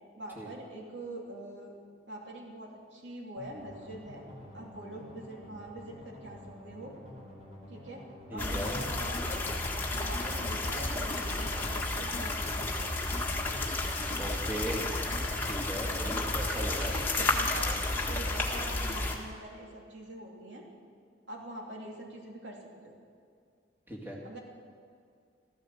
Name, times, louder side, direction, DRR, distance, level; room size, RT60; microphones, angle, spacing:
voice 1, 0.2-1.8 2.1-4.2 4.5-7.0 7.7-9.6 9.9-13.0 16.0-17.8 18.1-20.7 21.3-23.0 24.2-24.4, right 1 dB, 85° right, -1 dB, 2.8 m, -44 dB
sound 1, 3.4-18.1, equal, 35° right, 4.3 m, -49 dB
voice 2, 8.3-8.8 14.2-14.9 15.4-17.0 23.9-24.2, right 1 dB, 10° right, -4 dB, 2.3 m, -38 dB
sound 2, 8.4-19.2, left 2 dB, 10° left, 1.5 m, -32 dB
Keyboard (musical), 8.6-16.5, left 4 dB, 35° left, 1.3 m, -42 dB
14.0 x 13.5 x 7.2 m, 2.3 s
head